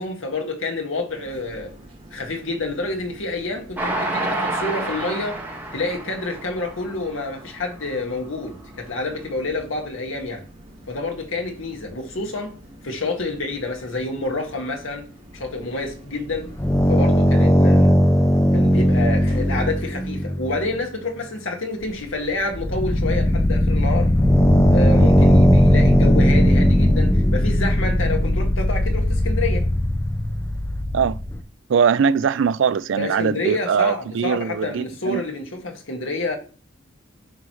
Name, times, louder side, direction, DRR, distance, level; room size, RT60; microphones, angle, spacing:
voice 1, 0.0-1.7 2.1-5.4 5.7-10.4 10.9-12.5 12.8-15.1 15.3-16.5 16.9-17.9 18.5-24.1 24.7-29.7 33.0-36.4, left 2 dB, 80° left, 1.8 m, -28 dB
sound 1, 1.1-20.0, right 1 dB, 30° right, 2.7 m, -46 dB
Train, 3.8-7.2 7.7-7.8 8.1-8.2, right 2 dB, 10° right, 1.6 m, -28 dB
sound 2, 16.3-20.8 21.8-21.9 22.3-31.4, equal, 15° left, 0.5 m, -18 dB
voice 2, 31.7-35.2, right 6 dB, 65° right, 0.4 m, -21 dB
9.1 x 6.3 x 3.1 m
head